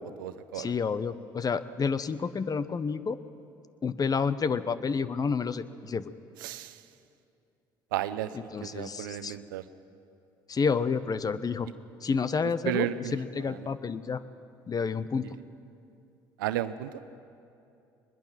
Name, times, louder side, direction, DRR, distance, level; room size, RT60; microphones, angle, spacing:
voice 1, 0.0-0.7 6.4-6.8 7.9-8.3 8.6-9.6 12.6-13.7 15.2-15.3 16.4-16.9, right 12 dB, 85° right, 13 dB, 0.7 m, -33 dB
voice 2, 0.5-3.2 3.8-6.0 8.5-9.4 10.5-11.7 12.0-14.2 14.7-15.3, left 5 dB, 35° left, 14 dB, 0.9 m, -29 dB
22.0 x 21.0 x 5.9 m, 2.6 s
hypercardioid pair, 60°, 11 cm